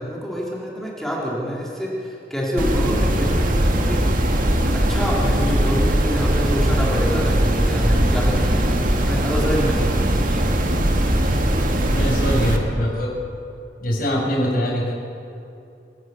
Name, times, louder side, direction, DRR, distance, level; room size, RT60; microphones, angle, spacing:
voice 1, 0.0-10.4, equal, ahead, -4 dB, 4.0 m, -27 dB
sound 1, 2.6-12.6, right 1 dB, 50° right, 2.2 m, -20 dB
voice 2, 11.9-13.1 13.8-14.9, equal, 55° left, -2 dB, 6.3 m, -22 dB
28.0 x 11.5 x 8.7 m, 2.7 s
head